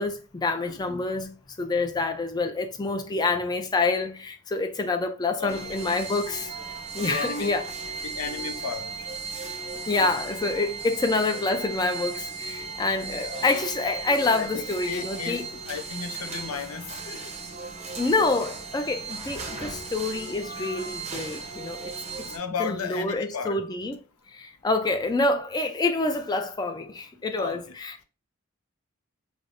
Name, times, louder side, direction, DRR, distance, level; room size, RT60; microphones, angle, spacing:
voice 1, 0.0-6.5 6.9-7.6 9.9-15.5 17.9-21.9 22.2-22.3 22.6-24.0 24.3-28.0, left 3 dB, 20° left, 0.3 m, -27 dB
voice 2, 0.7-1.0 5.4-5.8 7.0-7.5 8.0-8.9 13.1-13.5 14.4-17.3 18.0-18.1 22.3-23.6 27.4-27.6, left 6 dB, 75° left, 0.5 m, -34 dB
sound 1, 5.5-22.4, right 4 dB, 30° right, 0.6 m, -36 dB
5.1 x 2.0 x 2.5 m
head